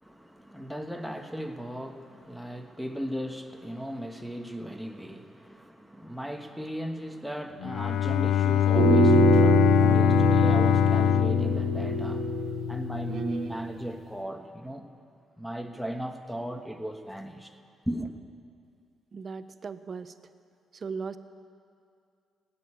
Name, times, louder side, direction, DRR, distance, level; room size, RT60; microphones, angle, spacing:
voice 1, 0.0-12.4 12.7-14.9 15.4-17.6 17.9-18.1, equal, ahead, 4 dB, 1.3 m, -37 dB
Bowed string instrument, 7.6-12.6, left 11 dB, 80° left, 0.3 m, -23 dB
sound 1, 8.7-13.7, right 2 dB, 65° right, 1.7 m, -25 dB
voice 2, 19.1-20.1 20.7-21.2, right 5 dB, 40° right, 11 dB, 0.8 m, -37 dB
16.5 x 8.8 x 9.9 m, 2.3 s
cardioid pair, 90°, 0 cm